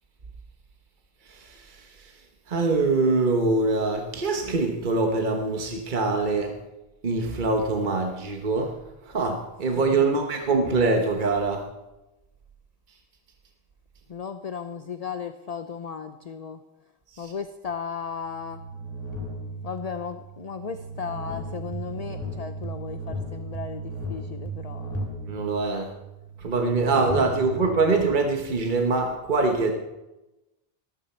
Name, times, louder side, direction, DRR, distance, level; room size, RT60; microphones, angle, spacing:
voice 1, 1.2-6.6 7.0-8.8 9.0-11.7 17.1-17.3 25.3-25.9 26.4-29.7, right 3 dB, 50° right, 3 dB, 1.3 m, -24 dB
voice 2, 9.8-10.4 14.1-16.6 17.2-18.6 19.6-25.1 27.0-28.0, left 6 dB, 45° left, 9 dB, 0.6 m, -36 dB
sound 1, 17.8-28.4, right 1 dB, 15° right, 2.9 m, -36 dB
14.0 x 13.5 x 4.3 m, 1.0 s
omnidirectional pair, 1.0 m